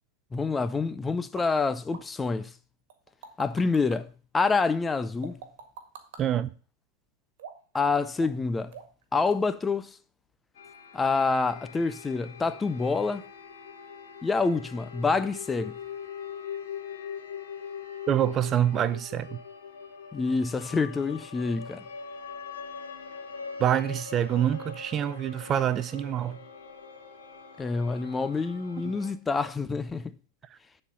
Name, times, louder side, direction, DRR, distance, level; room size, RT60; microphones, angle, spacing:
voice 1, 0.3-2.5 3.4-4.1 4.3-5.4 7.7-8.7 9.1-10.0 10.9-13.3 14.2-15.7 20.1-21.8 27.6-30.1, left 4 dB, 15° left, 0.5 m, -27 dB
sound 1, 1.4-1.5 1.9-2.0 2.9-4.0 5.2-6.2 7.4-7.8 8.2-8.4 8.7-9.0 9.3-9.4, right 7 dB, 65° right, 1.8 m, -44 dB
voice 2, 6.2-6.5 18.1-19.4 23.6-26.4, right 10 dB, 30° right, 0.5 m, -26 dB
sound 2, 10.6-29.1, left 6 dB, 80° left, 1.9 m, -42 dB
9.8 x 4.4 x 5.4 m
hypercardioid pair, 110°, 0 cm